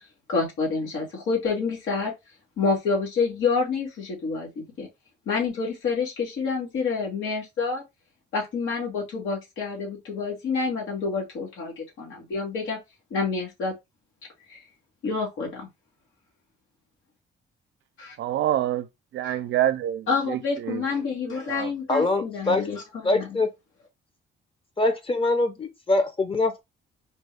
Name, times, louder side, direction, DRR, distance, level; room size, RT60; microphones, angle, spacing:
voice 1, 0.3-2.1 2.6-4.9 5.3-7.8 8.3-12.8 13.1-13.7 14.5-14.6 15.0-15.7 18.0-18.2 19.2-19.4 20.1-23.4, left 4 dB, 80° left, 2.1 m, -28 dB
voice 2, 18.2-18.9 19.1-21.7, right 12 dB, 75° right, 0.5 m, -27 dB
voice 3, 21.9-22.7 23.0-23.5 24.8-26.6, left 2 dB, 25° left, 0.9 m, -23 dB
4.3 x 2.3 x 3.4 m
cardioid pair, 90°, 20 cm